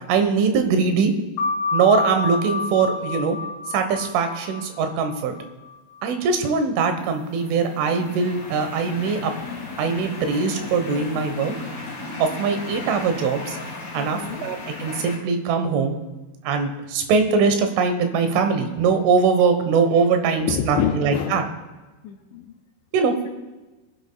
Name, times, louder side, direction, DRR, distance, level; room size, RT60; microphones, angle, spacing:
voice 1, 0.1-1.1 1.7-3.4 3.7-5.3 6.0-9.3 9.8-11.5 12.2-13.6 13.9-15.9 16.5-21.4 22.9-23.1, right 5 dB, 85° right, 7 dB, 3.7 m, -21 dB
sound 1, 1.4-6.6, left 3 dB, 65° left, 2.8 m, -29 dB
sound 2, 7.1-15.2, left 3 dB, 25° left, 3.3 m, -35 dB
voice 2, 13.9-14.5 20.4-21.4 22.0-22.5 23.0-23.3, left 9 dB, 80° left, 0 dB, 2.8 m, -27 dB
24.0 x 10.5 x 2.3 m, 1.1 s
omnidirectional pair, 5.5 m